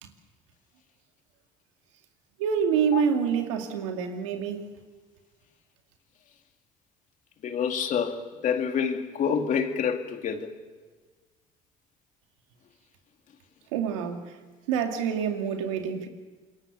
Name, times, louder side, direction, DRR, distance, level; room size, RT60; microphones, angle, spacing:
voice 1, 2.4-4.6 13.7-14.4 14.7-16.1, right 7 dB, 90° right, 2.3 m, -27 dB
voice 2, 7.4-10.5, left 7 dB, 55° left, 2.6 m, -27 dB
26.5 x 23.0 x 6.9 m
supercardioid pair, 70°, 16 cm